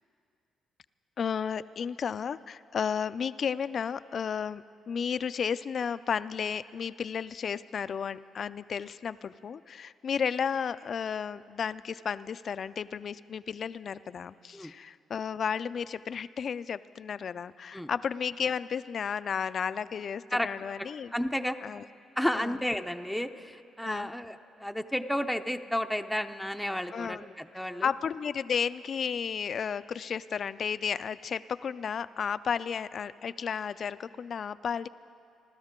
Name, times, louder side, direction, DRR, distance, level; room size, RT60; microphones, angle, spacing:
voice 1, 1.2-21.1 21.6-21.8 22.3-22.5 23.8-24.1 26.9-27.2 27.8-34.9, left 7 dB, 50° left, 15 dB, 0.4 m, -33 dB
voice 2, 20.8-21.6 22.2-27.9, equal, ahead, 5 dB, 0.6 m, -32 dB
30.0 x 13.0 x 3.7 m, 2.4 s
cardioid pair, 90°, 0 cm